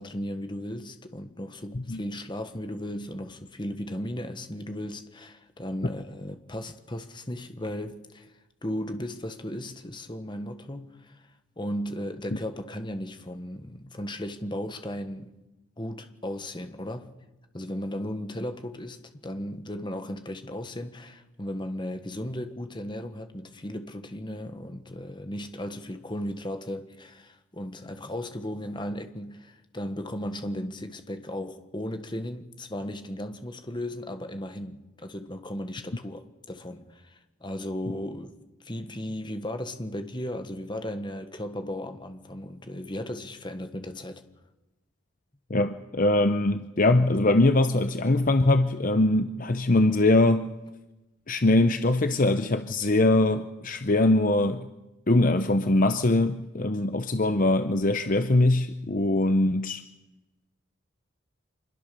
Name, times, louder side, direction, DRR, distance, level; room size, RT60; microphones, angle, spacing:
voice 1, 0.0-8.3 8.6-11.3 11.6-15.3 15.8-17.1 17.5-44.2, left 1 dB, 20° left, 1.4 m, -36 dB
voice 2, 45.5-50.5 51.3-54.6 55.1-59.8, left 2 dB, 40° left, 0.8 m, -22 dB
25.5 x 21.5 x 6.9 m
head